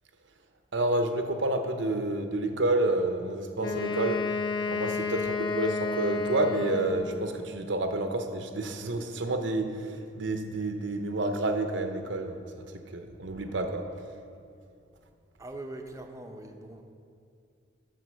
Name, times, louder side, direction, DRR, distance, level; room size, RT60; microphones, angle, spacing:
voice 1, 0.7-4.3 4.7-12.4 12.9-13.9, right 2 dB, 80° right, 6 dB, 0.8 m, -29 dB
Wind instrument woodwind instrument, 3.6-7.3, left 4 dB, 65° left, 0.8 m, -31 dB
voice 2, 13.1-13.7 15.4-16.8, right 2 dB, 15° right, 4 dB, 0.6 m, -43 dB
7.8 x 6.3 x 6.3 m, 2.5 s
head